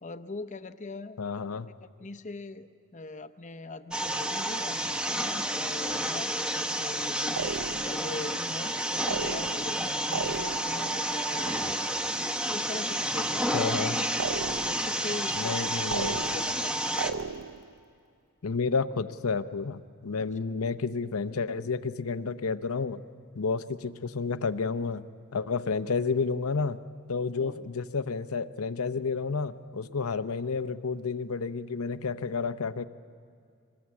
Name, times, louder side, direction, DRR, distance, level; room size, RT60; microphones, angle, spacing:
voice 1, 0.0-1.2 1.8-6.3 6.8-11.7 12.5-13.5 14.6-15.8 16.3-16.9 20.2-20.3 27.4-27.7, left 2 dB, 35° left, 10 dB, 0.8 m, -41 dB
voice 2, 1.2-1.7 13.5-14.0 15.3-16.2 18.4-23.0 23.3-25.0 25.3-26.8 27.1-32.8, left 4 dB, 90° left, 11 dB, 0.7 m, -30 dB
sound 1, 3.9-17.1, right 1 dB, 5° right, 0.9 m, -30 dB
sound 2, 7.4-8.1 9.1-9.8 10.1-10.9 14.2-14.9 15.9-16.6 17.0-17.7, right 5 dB, 70° right, 0.7 m, -34 dB
24.5 x 20.5 x 8.4 m, 2.3 s
head